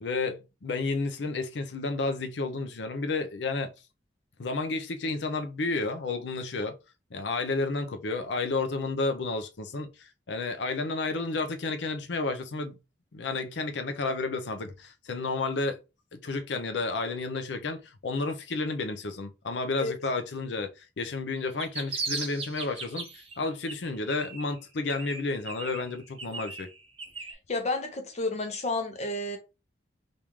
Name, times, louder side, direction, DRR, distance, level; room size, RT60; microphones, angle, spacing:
voice 1, 0.0-3.7 4.4-6.8 7.1-12.8 13.1-15.8 16.1-23.1 23.4-26.7, left 3 dB, 80° left, 0.6 m, -31 dB
sound 1, 21.4-23.3 23.7-24.6 24.9-27.3, right 4 dB, 35° right, 0.8 m, -37 dB
voice 2, 27.5-29.4, left 2 dB, 40° left, 0.8 m, -30 dB
3.5 x 2.5 x 3.0 m
head